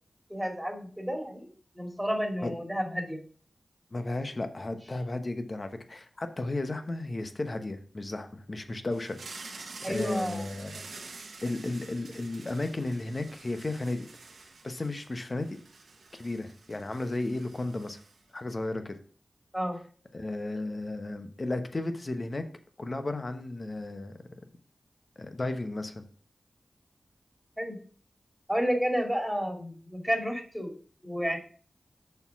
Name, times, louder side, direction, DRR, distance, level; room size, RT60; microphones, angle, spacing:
voice 1, 0.3-1.5 1.7-3.2 9.8-10.5 19.5-19.8 27.6-27.8 28.5-30.7 31.0-31.4, equal, 5° right, 2 dB, 2.4 m, -31 dB
voice 2, 3.9-10.8 11.4-14.1 14.6-15.5 16.1-18.0 18.3-18.9 20.1-22.4 22.8-24.1 25.2-26.0, left 2 dB, 45° left, 8 dB, 1.0 m, -34 dB
sound 1, 8.9-18.4, right 3 dB, 85° right, 1.1 m, -48 dB
6.7 x 4.6 x 5.8 m, 0.43 s
cardioid pair, 50°, 0 cm